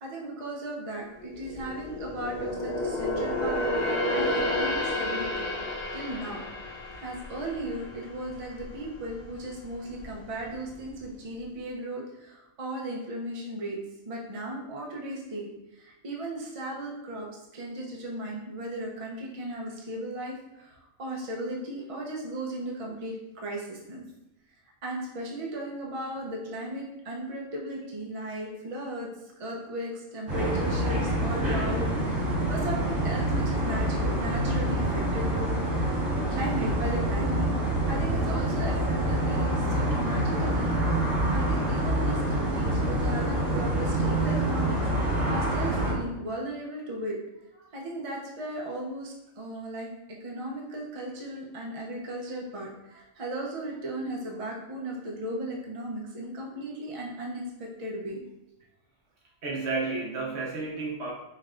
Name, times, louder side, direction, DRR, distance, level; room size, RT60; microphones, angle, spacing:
voice 1, 0.0-3.6 4.1-5.5 5.9-6.4 6.9-13.8 14.0-17.3 17.5-24.0 24.8-31.9 32.5-37.5 37.9-40.8 41.3-47.2 47.7-49.9 50.2-58.2, right 1 dB, 35° right, -3 dB, 0.7 m, -36 dB
sound 1, 1.2-8.7 9.1-9.3 9.9-10.6 10.9-11.0, left 1 dB, 85° left, 1.6 m, -31 dB
sound 2, 30.3-45.9, right 1 dB, 90° right, 2.0 m, -26 dB
voice 2, 59.4-61.1, right 3 dB, 60° right, -2 dB, 1.0 m, -31 dB
5.5 x 3.2 x 2.5 m, 0.94 s
omnidirectional pair, 1.3 m